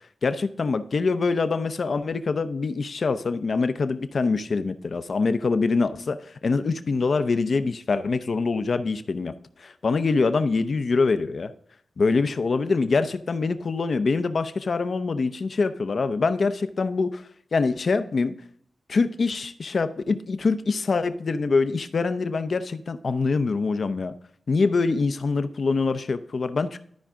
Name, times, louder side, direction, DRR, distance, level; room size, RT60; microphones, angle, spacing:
voice 1, 0.2-9.3 9.6-11.5 12.0-17.2 17.5-18.4 18.9-24.1 24.5-26.8, left 4 dB, 60° left, 11 dB, 0.6 m, -24 dB
13.0 x 4.9 x 3.6 m, 0.64 s
cardioid pair, 50°, 0 cm